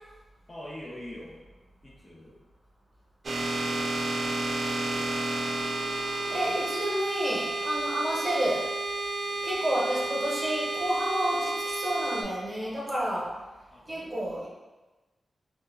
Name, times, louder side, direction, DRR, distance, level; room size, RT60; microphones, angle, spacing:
voice 1, 0.5-1.4 1.8-2.4 13.7-14.5, left 1 dB, 35° left, -5 dB, 0.6 m, -44 dB
sound 1, 3.2-12.2, right 2 dB, 55° right, 0.3 m, -31 dB
voice 2, 6.3-8.7 9.4-13.3 13.9-14.5, right 1 dB, 30° right, -5 dB, 0.9 m, -30 dB
2.8 x 2.2 x 2.3 m, 1.1 s
cardioid pair, 70°, 0 cm